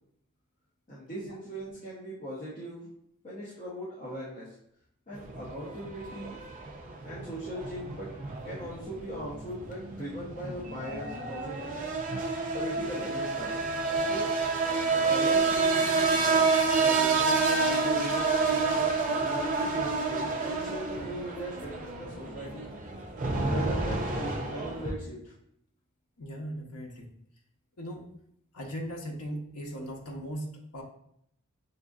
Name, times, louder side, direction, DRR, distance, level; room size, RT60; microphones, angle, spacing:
voice 1, 0.9-2.9 3.2-4.5 5.1-6.4 7.0-8.1 8.4-11.9 12.5-13.6 14.0-14.3 14.9-22.7 23.5-25.3, equal, 35° left, -9 dB, 0.9 m, -40 dB
sound 1, 5.1-24.9, right 4 dB, 35° right, 0.5 m, -29 dB
voice 2, 26.2-27.1 27.8-28.0 28.5-30.8, equal, 85° left, 0 dB, 0.8 m, -38 dB
6.3 x 2.6 x 2.4 m, 0.71 s
head